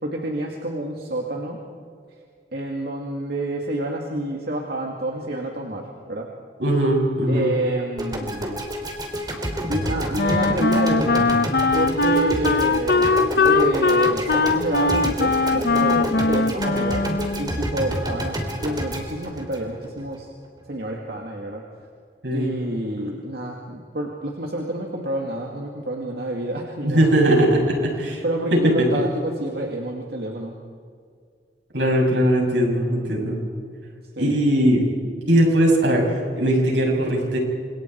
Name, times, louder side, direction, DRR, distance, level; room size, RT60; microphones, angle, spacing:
voice 1, 0.0-1.6 2.5-6.3 7.3-8.7 9.7-11.3 11.7-13.1 13.4-17.0 17.4-20.3 20.7-21.6 22.3-27.1 28.2-30.5 34.2-34.3, right 1 dB, 60° right, 0 dB, 2.4 m, -28 dB
voice 2, 6.6-7.5 22.2-22.5 26.8-28.2 31.7-33.4 34.2-34.8 35.3-36.0 36.3-37.4, right 1 dB, 80° right, -1 dB, 7.8 m, -19 dB
sound 1, 8.0-20.2, equal, 25° right, 3.3 m, -29 dB
Wind instrument woodwind instrument, 10.2-17.6, left 3 dB, 60° left, 0.8 m, -20 dB
29.0 x 27.5 x 4.7 m, 2.2 s
head